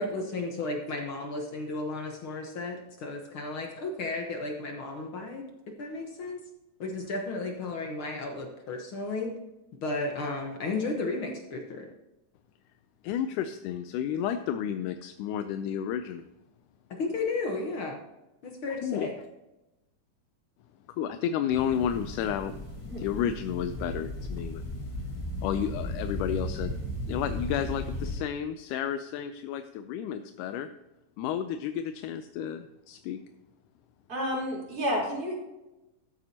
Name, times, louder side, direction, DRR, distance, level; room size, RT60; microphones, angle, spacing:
voice 1, 0.0-5.5 5.8-6.4 6.8-9.3 9.8-11.9 17.0-18.0 18.4-19.1, left 3 dB, 65° left, 2 dB, 1.3 m, -33 dB
voice 2, 13.0-16.2 18.8-19.1 20.9-22.5 22.8-24.6 25.4-26.7 27.0-30.7 31.2-33.2, left 9 dB, 80° left, 9 dB, 2.0 m, -31 dB
sound 1, 21.5-28.2, left 1 dB, 15° left, 1.0 m, -36 dB
voice 3, 34.1-35.3, equal, 25° right, -5 dB, 3.9 m, -30 dB
13.5 x 8.8 x 2.8 m, 0.98 s
omnidirectional pair, 3.8 m